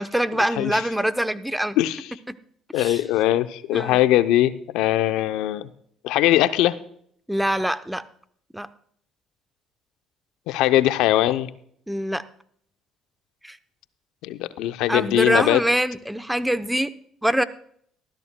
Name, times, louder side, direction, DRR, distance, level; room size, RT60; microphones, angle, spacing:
voice 1, 0.0-1.8 2.3-2.4 2.8-3.0 3.7-4.0 7.3-8.0 8.5-8.7 11.9-12.2 13.4-13.6 14.9-16.9 17.2-17.4, equal, 5° right, 12 dB, 0.7 m, -24 dB
voice 2, 1.8-2.1 2.7-5.7 6.0-6.8 10.5-11.5 14.2-15.6, left 14 dB, 80° left, 12 dB, 0.6 m, -21 dB
19.5 x 13.5 x 2.2 m, 0.64 s
supercardioid pair, 70°, 0 cm